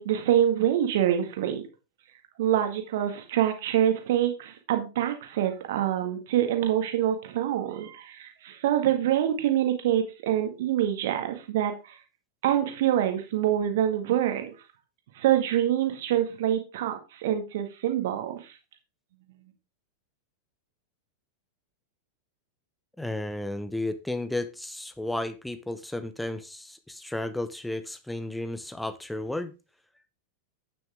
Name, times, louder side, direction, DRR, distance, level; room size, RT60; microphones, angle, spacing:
voice 1, 0.0-1.6 2.4-11.9 12.4-14.5 15.1-18.5, right 11 dB, 55° right, 6 dB, 1.9 m, -26 dB
voice 2, 23.0-29.5, left 1 dB, 5° left, 11 dB, 0.8 m, -33 dB
9.0 x 7.4 x 3.5 m, 0.29 s
figure-of-eight pair, 90°, 0 cm